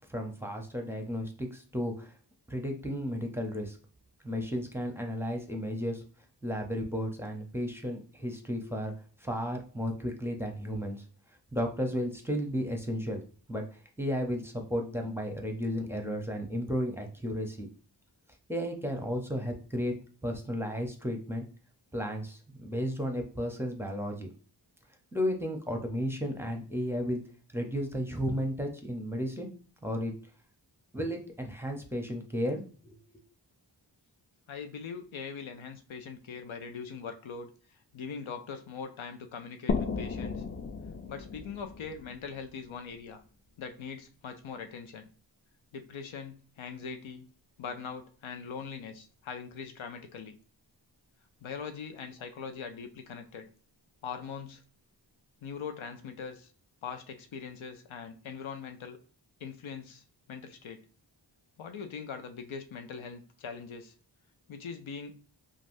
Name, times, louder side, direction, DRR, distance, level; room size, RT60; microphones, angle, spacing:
voice 1, 0.1-2.1 2.5-3.8 4.2-6.0 6.4-8.9 9.2-11.0 11.5-13.2 13.5-17.7 18.5-19.9 20.2-21.4 21.9-24.3 25.1-27.2 27.5-29.5 29.8-30.1 30.9-32.6 32.9-33.0, equal, 5° right, 2 dB, 0.7 m, -33 dB
voice 2, 34.5-40.4 41.1-43.2 43.6-45.1 45.7-47.3 47.6-50.4 51.4-53.5 54.0-54.6 55.4-56.5 56.8-59.0 59.4-60.8 61.6-63.9 64.5-65.2, left 6 dB, 85° left, 7 dB, 0.5 m, -41 dB
sound 1, 39.7-43.2, left 4 dB, 30° left, 0.3 m, -35 dB
3.2 x 2.5 x 2.6 m, 0.41 s
wide cardioid pair, 45°, 46 cm